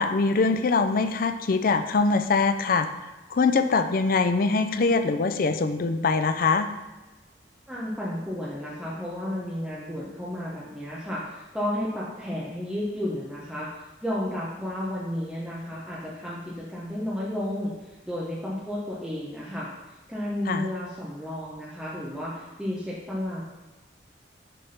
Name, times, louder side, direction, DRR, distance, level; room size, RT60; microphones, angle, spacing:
voice 1, 0.0-2.9 3.3-6.7 20.5-20.7, left 4 dB, 50° left, 9 dB, 0.5 m, -23 dB
voice 2, 7.7-13.7 14.0-19.7 20.1-23.4, left 1 dB, 5° right, -7 dB, 0.9 m, -32 dB
6.7 x 3.6 x 5.7 m, 1.1 s
head